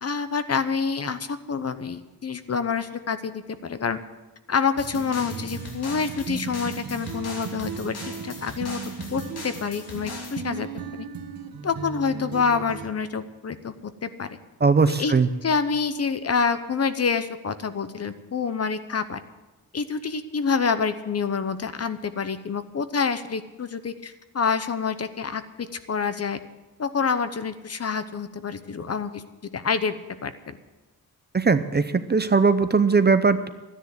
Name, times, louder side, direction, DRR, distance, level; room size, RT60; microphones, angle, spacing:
voice 1, 0.0-4.0 4.5-7.9 8.2-8.8 9.1-10.7 11.0-11.1 11.6-14.4 14.9-15.1 15.4-19.2 19.7-26.4 26.8-29.2 29.5-30.6, left 5 dB, 40° left, 11 dB, 0.8 m, -27 dB
sound 1, 4.8-10.4, left 3 dB, 80° left, 2.7 m, -41 dB
sound 2, 4.8-12.9, right 5 dB, 65° right, 1.3 m, -36 dB
voice 2, 14.6-15.3 31.3-33.5, right 4 dB, 25° right, 11 dB, 0.6 m, -19 dB
13.0 x 10.0 x 7.8 m, 1.1 s
wide cardioid pair, 130°, 37 cm